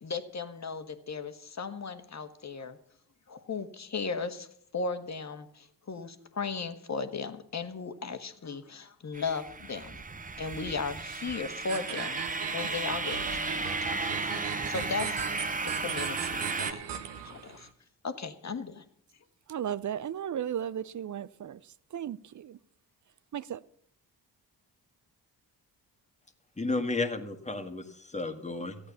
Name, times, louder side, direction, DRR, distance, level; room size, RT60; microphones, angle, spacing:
voice 1, 0.0-2.8 3.3-4.5 4.7-10.0 10.4-15.2 15.8-16.9 17.2-17.7 18.0-18.8, left 4 dB, 40° left, 1.5 m, -36 dB
sound 1, 9.1-16.7, right 3 dB, 20° right, 0.9 m, -35 dB
sound 2, 11.7-17.7, right 8 dB, 70° right, 1.3 m, -38 dB
voice 2, 19.5-22.6 23.3-23.6, right 9 dB, 45° right, 0.6 m, -35 dB
voice 3, 26.6-28.8, left 3 dB, 15° left, 1.9 m, -32 dB
14.0 x 8.7 x 7.0 m
supercardioid pair, 50°, 42 cm